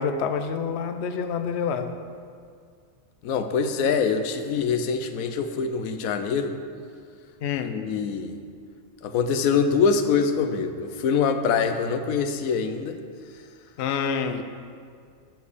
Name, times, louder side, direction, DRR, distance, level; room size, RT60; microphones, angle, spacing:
voice 1, 0.0-1.9 7.4-7.7 13.8-14.4, left 6 dB, 60° left, 8 dB, 0.8 m, -27 dB
voice 2, 3.2-6.5 7.6-8.3 9.0-13.0, left 5 dB, 85° left, 8 dB, 1.1 m, -24 dB
11.5 x 4.6 x 5.0 m, 2.2 s
omnidirectional pair, 1.4 m